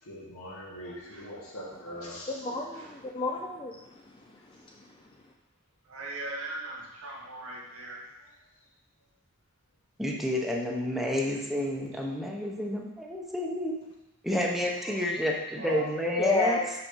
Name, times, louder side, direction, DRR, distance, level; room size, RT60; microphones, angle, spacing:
voice 1, 0.0-2.5 14.8-15.1, equal, 85° left, -5 dB, 2.1 m, -42 dB
voice 2, 2.3-3.8 4.3-4.9 16.2-16.8, left 2 dB, 25° left, 0 dB, 0.5 m, -31 dB
voice 3, 5.8-8.1 15.6-15.9, right 1 dB, 75° right, -3 dB, 2.1 m, -39 dB
voice 4, 10.0-13.8 14.2-16.6, left 1 dB, ahead, -1 dB, 0.8 m, -30 dB
5.9 x 5.0 x 5.5 m, 0.96 s
head